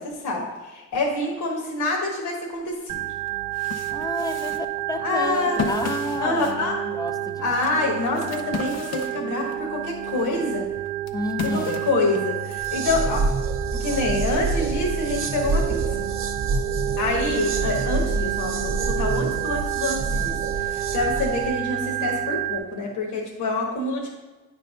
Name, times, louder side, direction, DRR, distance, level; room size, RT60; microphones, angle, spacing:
voice 1, 0.0-3.0 5.0-5.7 6.2-6.7 7.4-10.7 11.4-13.3 13.8-16.1 17.0-24.1, left 2 dB, 75° left, -1 dB, 1.3 m, -26 dB
sound 1, 2.7-2.8 3.3-9.6 10.1-12.7, left 6 dB, 55° left, 0.7 m, -35 dB
Organ, 2.9-22.6, right 13 dB, 90° right, 0.6 m, -30 dB
voice 2, 3.9-7.5 11.1-11.8, left 1 dB, 15° left, 9 dB, 0.4 m, -31 dB
sound 2, 12.4-21.5, right 3 dB, 45° right, 0.7 m, -28 dB
9.1 x 3.3 x 5.4 m, 1.2 s
cardioid pair, 90°, 30 cm